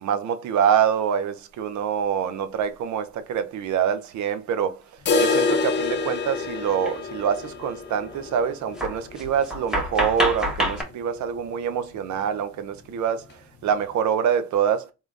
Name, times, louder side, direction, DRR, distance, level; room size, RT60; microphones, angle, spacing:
voice 1, 0.0-4.8 5.2-13.3 13.6-14.9, right 8 dB, 70° right, 0.6 m, -25 dB
sound 1, 5.1-10.9 11.2-11.3 11.6-11.7 12.2-12.3 13.2-13.3, left 4 dB, 35° left, 0.6 m, -27 dB
sound 2, 5.1-5.2 6.8-7.0 7.2-7.5 8.1-8.2 8.7-10.8, equal, ahead, 1.0 m, -27 dB
3.8 x 3.0 x 2.4 m
cardioid pair, 90°, 30 cm